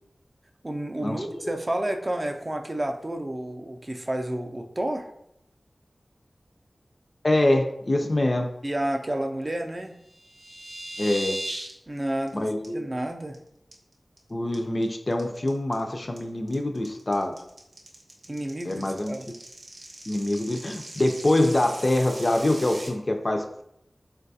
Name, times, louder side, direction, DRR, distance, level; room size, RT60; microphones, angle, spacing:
voice 1, 0.6-5.1 8.6-10.0 11.9-12.5 12.7-13.4 18.3-19.3, right 1 dB, 35° right, 4 dB, 0.3 m, -30 dB
voice 2, 7.2-8.5 11.0-11.4 12.3-12.9 14.3-17.3 18.6-19.1 20.1-23.6, left 1 dB, 45° left, 4 dB, 0.3 m, -25 dB
sound 1, 10.0-11.7 12.0-12.3 12.6-12.7 13.1-13.3 13.7-14.2 14.5-22.9, right 1 dB, 85° right, 0.6 m, -39 dB
3.9 x 2.2 x 2.6 m, 0.79 s
wide cardioid pair, 60°, 0 cm